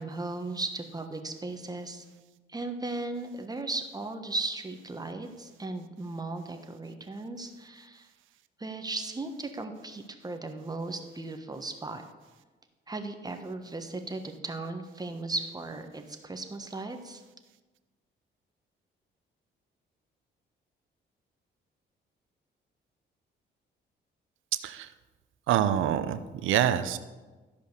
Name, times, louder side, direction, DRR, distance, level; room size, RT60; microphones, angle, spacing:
voice 1, 0.0-2.0 2.5-8.1 8.6-12.0 12.9-17.2, right 2 dB, 20° right, 6 dB, 1.3 m, -36 dB
voice 2, 25.5-27.0, right 10 dB, 80° right, 11 dB, 0.7 m, -26 dB
13.0 x 5.2 x 6.7 m, 1.2 s
cardioid pair, 90°, 20 cm